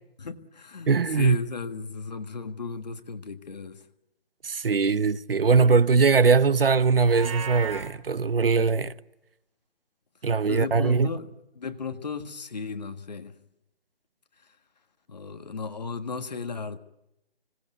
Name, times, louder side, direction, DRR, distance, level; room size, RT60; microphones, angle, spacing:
voice 1, 0.2-3.8 10.5-13.3 15.1-16.8, left 4 dB, 40° left, 1.6 m, -35 dB
voice 2, 0.9-1.4 4.4-8.9 10.2-11.1, right 5 dB, 65° right, 0.8 m, -21 dB
Livestock farm animals working animals, 7.0-7.9, right 5 dB, 30° right, 2.2 m, -34 dB
26.0 x 18.0 x 9.5 m
hypercardioid pair, 170°, 31 cm